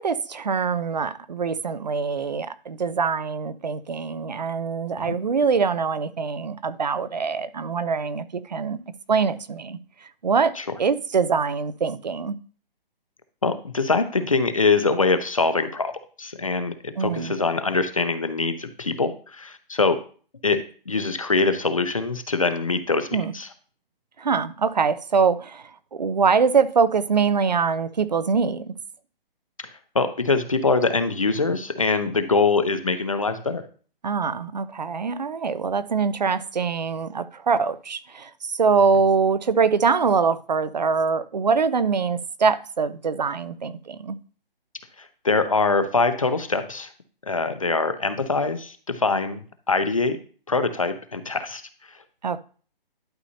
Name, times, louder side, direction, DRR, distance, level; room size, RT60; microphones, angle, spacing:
voice 1, 0.0-8.8 9.1-9.8 10.2-10.5 10.8-12.4 17.0-17.3 23.1-23.3 24.2-25.6 25.9-28.7 34.0-44.2 52.2-52.4, right 5 dB, 45° right, 0.5 m, -23 dB
voice 2, 13.4-15.9 16.2-20.0 20.4-23.5 29.9-33.6 45.0-46.9 47.3-49.4 49.7-50.2 50.5-51.6, left 3 dB, 35° left, 0.5 m, -23 dB
11.5 x 5.4 x 2.8 m
hypercardioid pair, 180°, 29 cm